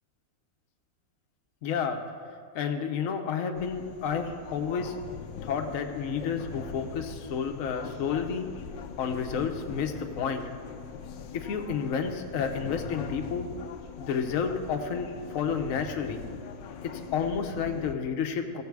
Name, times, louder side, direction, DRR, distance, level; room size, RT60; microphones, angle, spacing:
voice 1, 1.6-2.0 2.5-4.9 5.4-8.5 9.0-10.4 11.3-13.5 14.0-16.2 16.9-18.6, left 6 dB, 55° left, 5 dB, 1.1 m, -30 dB
sound 1, 3.6-18.0, left 6 dB, 75° left, 1.3 m, -41 dB
15.5 x 7.5 x 4.7 m, 2.1 s
omnidirectional pair, 2.0 m